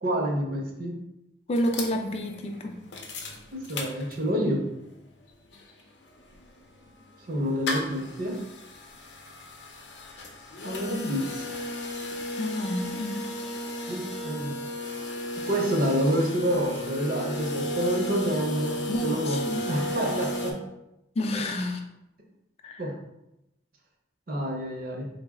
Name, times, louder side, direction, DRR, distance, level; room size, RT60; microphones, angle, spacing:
voice 1, 0.0-1.0 3.5-4.6 7.3-8.4 10.6-11.5 13.9-14.6 15.4-20.6 21.3-21.4 22.8-22.9 24.3-25.1, equal, 55° right, 1 dB, 0.6 m, -28 dB
sound 1, 1.5-4.5 4.9-5.0 5.2-20.5, left 1 dB, 85° left, 0.6 m, -34 dB
voice 2, 1.5-2.8 12.4-13.2 18.9-19.6 21.2-21.8 22.6-22.8, left 1 dB, 35° left, 4 dB, 0.4 m, -29 dB
3.8 x 2.0 x 3.5 m, 0.89 s
head